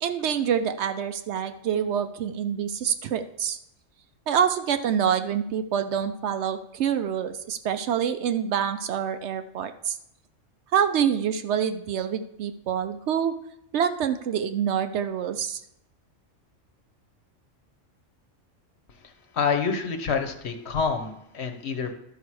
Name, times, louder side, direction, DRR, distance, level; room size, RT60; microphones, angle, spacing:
voice 1, 0.0-3.6 4.3-9.9 10.7-13.3 13.7-15.6, right 8 dB, 70° right, 10 dB, 0.8 m, -26 dB
voice 2, 19.3-21.9, left 5 dB, 60° left, 6 dB, 1.1 m, -27 dB
12.0 x 5.6 x 4.7 m, 0.77 s
omnidirectional pair, 1.3 m